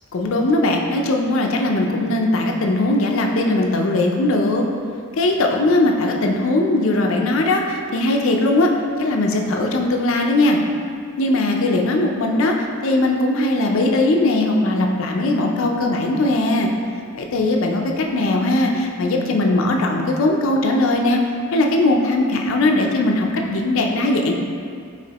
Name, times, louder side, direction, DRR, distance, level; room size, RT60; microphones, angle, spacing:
voice 1, 0.1-4.6 5.1-8.7 9.0-10.6 11.2-16.7 17.1-21.2 21.5-24.3, left 2 dB, 60° left, 2 dB, 0.4 m, -19 dB
4.9 x 2.9 x 2.8 m, 2.2 s
head